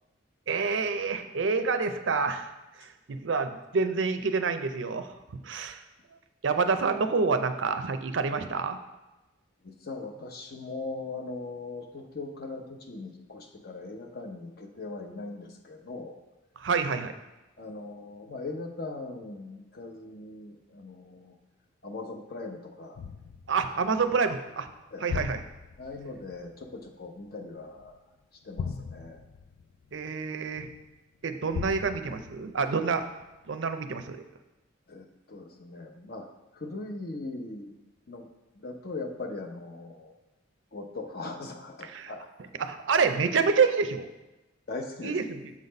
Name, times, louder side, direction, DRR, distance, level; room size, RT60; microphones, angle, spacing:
voice 1, 0.5-2.5 2.8-5.1 5.4-5.8 6.4-8.8 16.6-17.1 23.5-24.7 25.0-25.4 29.9-30.7 31.2-33.0 33.5-34.2 41.8-42.1 42.6-44.1 45.0-45.5, right 5 dB, 70° right, 9 dB, 0.5 m, -27 dB
voice 2, 9.6-16.2 17.6-21.3 21.8-23.0 24.9-25.1 25.8-28.0 28.4-29.2 34.9-36.3 36.5-37.7 38.1-38.3 38.5-40.1 40.7-42.3 44.7-45.2, left 3 dB, 55° left, 4 dB, 0.8 m, -40 dB
sound 1, 22.9-28.0 28.5-30.9 31.5-33.5 34.0-34.1, left 6 dB, 85° left, 0.4 m, -40 dB
7.4 x 4.1 x 5.2 m, 1.1 s
head